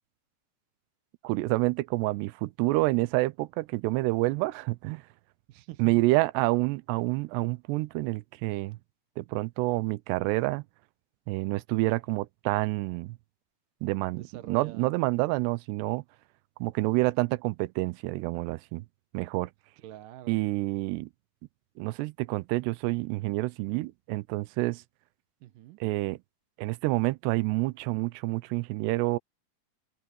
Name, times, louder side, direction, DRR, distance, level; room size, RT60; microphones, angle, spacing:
voice 1, 1.2-5.0 5.8-8.8 9.2-10.6 11.3-13.2 13.8-16.0 16.6-18.8 19.1-19.5 20.3-21.1 21.8-24.8 25.8-26.2 26.6-29.2, right 21 dB, 85° right, 2.8 m, -28 dB
voice 2, 5.5-6.1 14.1-14.9 19.8-20.4 25.4-25.8, right 14 dB, 70° right, 2.2 m, -45 dB
omnidirectional pair, 4.8 m